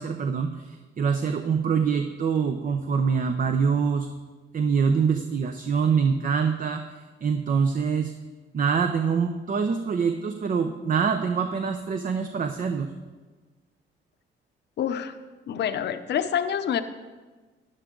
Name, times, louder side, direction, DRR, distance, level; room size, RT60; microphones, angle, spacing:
voice 1, 0.0-4.1 4.5-8.1 8.5-12.9, right 6 dB, 45° right, 6 dB, 0.7 m, -25 dB
voice 2, 14.8-15.2 15.5-16.8, left 9 dB, 60° left, 11 dB, 0.7 m, -27 dB
13.0 x 10.0 x 3.8 m, 1.3 s
cardioid pair, 90°, 20 cm